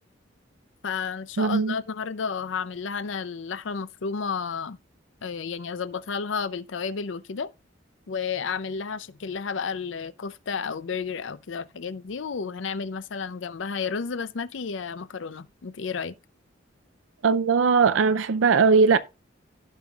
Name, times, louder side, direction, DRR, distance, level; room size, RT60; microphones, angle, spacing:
voice 1, 0.8-4.8 5.2-7.5 8.1-16.1, left 5 dB, 75° left, 0.5 m, -32 dB
voice 2, 1.4-1.8 17.2-19.0, right 5 dB, 85° right, 0.5 m, -19 dB
16.0 x 5.4 x 2.4 m
head